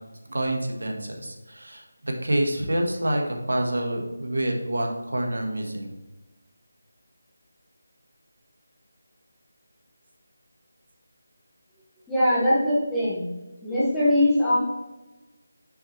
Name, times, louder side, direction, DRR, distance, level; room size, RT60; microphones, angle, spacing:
voice 1, 0.3-6.0, right 1 dB, 85° right, 2 dB, 1.3 m, -27 dB
voice 2, 12.1-13.3 13.6-14.6, left 1 dB, 5° left, -11 dB, 1.0 m, -21 dB
6.4 x 5.8 x 2.8 m, 1.1 s
figure-of-eight pair, 175°, 0 cm